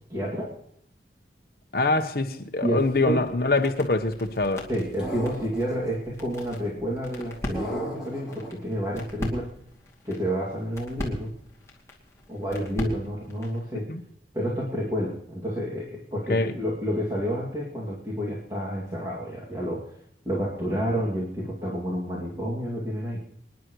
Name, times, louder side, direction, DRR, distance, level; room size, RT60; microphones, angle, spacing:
voice 1, 0.1-0.5 2.6-2.8 3.0-3.2 4.7-9.5 10.0-11.3 12.3-13.9 14.3-19.9 20.2-23.2, equal, 20° right, 2.4 m, -29 dB
voice 2, 1.7-4.7 13.9-14.0 16.3-16.5, left 3 dB, 55° left, 1.0 m, -24 dB
sound 1, 2.8-13.6, left 1 dB, 15° left, 2.5 m, -40 dB
sound 2, 5.0-5.9 7.5-8.5, right 1 dB, 5° right, 5.1 m, -34 dB
27.0 x 10.5 x 3.1 m
head